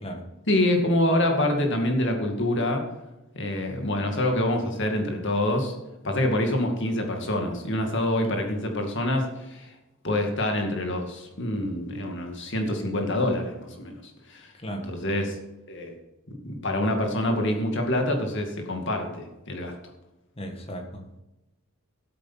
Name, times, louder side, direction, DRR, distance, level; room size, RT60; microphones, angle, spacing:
voice 1, 0.5-2.9 3.3-5.7 6.0-9.7 10.0-14.0 14.3-14.5 14.9-15.3 15.7-15.9 16.4-19.7, left 1 dB, 55° left, 4 dB, 2.3 m, -26 dB
voice 2, 14.6-14.9 20.4-21.2, equal, 25° left, 3 dB, 1.7 m, -36 dB
13.0 x 8.6 x 5.8 m, 0.97 s
head